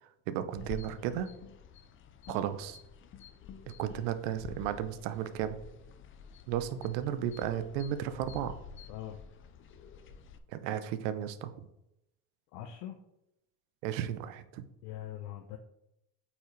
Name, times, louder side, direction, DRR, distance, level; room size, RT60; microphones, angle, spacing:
voice 1, 0.0-1.3 2.3-2.8 3.8-5.6 6.5-8.5 10.5-11.5 13.8-14.6, right 10 dB, 80° right, 11 dB, 0.8 m, -34 dB
sound 1, 0.6-10.4, left 6 dB, 25° left, 0.4 m, -49 dB
voice 2, 8.9-9.2 12.5-13.0 14.8-15.6, left 12 dB, 75° left, 5 dB, 0.8 m, -42 dB
8.6 x 4.7 x 3.2 m, 0.85 s
supercardioid pair, 125°, 50 cm